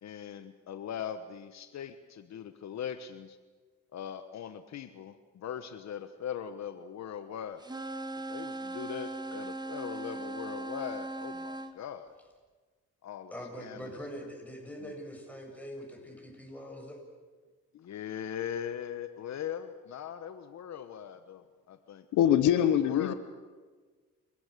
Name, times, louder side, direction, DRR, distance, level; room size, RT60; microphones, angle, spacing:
voice 1, 0.0-3.4 3.9-7.6 8.3-12.1 13.0-13.8 14.8-14.9 17.7-22.1 22.6-23.1, left 9 dB, 60° left, 10 dB, 1.2 m, -40 dB
sound 1, 7.6-11.7, right 2 dB, 15° right, 1.8 m, -39 dB
voice 2, 13.3-17.1, equal, 5° left, 1 dB, 7.9 m, -43 dB
voice 3, 22.1-23.1, left 10 dB, 90° left, 12 dB, 1.2 m, -23 dB
29.0 x 16.0 x 8.4 m, 1.4 s
cardioid pair, 90°, 30 cm